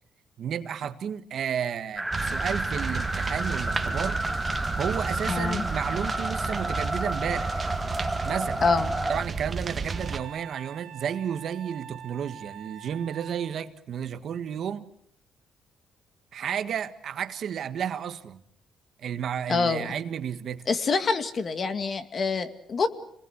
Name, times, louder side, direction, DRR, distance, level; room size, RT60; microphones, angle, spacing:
voice 1, 0.4-4.2 4.8-7.7 8.2-8.6 9.1-14.9 16.3-18.4 19.0-20.7, right 8 dB, 60° right, 1.7 m, -32 dB
sound 1, 2.0-9.2, right 1 dB, 5° right, 1.0 m, -31 dB
sound 2, 2.1-10.2, right 4 dB, 30° right, 1.9 m, -32 dB
voice 2, 5.3-5.6 8.6-8.9 19.5-19.9 20.7-22.9, left 4 dB, 45° left, 2.2 m, -26 dB
Wind instrument woodwind instrument, 9.9-13.6, right 10 dB, 80° right, 1.7 m, -45 dB
28.0 x 20.5 x 8.3 m
cardioid pair, 110°, 0 cm